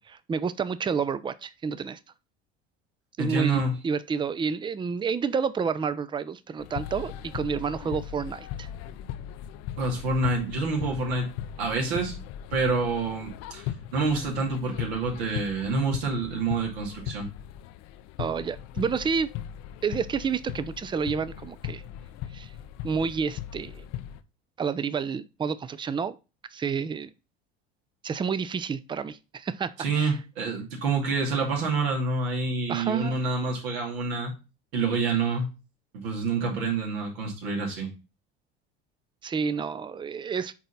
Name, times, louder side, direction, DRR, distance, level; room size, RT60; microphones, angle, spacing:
voice 1, 0.3-2.0 3.2-8.7 18.2-19.3 19.8-21.8 22.3-22.5 22.8-23.8 24.6-26.2 26.5-27.1 28.0-30.1 32.7-33.2 39.2-40.5, right 6 dB, 15° right, 0.4 m, -29 dB
voice 2, 3.2-3.8 9.8-11.3 11.6-12.1 12.5-17.3 29.8-34.3 34.7-35.5 35.9-37.9, right 3 dB, 80° right, 2.4 m, -27 dB
sound 1, 6.6-24.2, left 11 dB, 60° left, 0.6 m, -38 dB
6.0 x 4.0 x 4.0 m
hypercardioid pair, 75°, 30 cm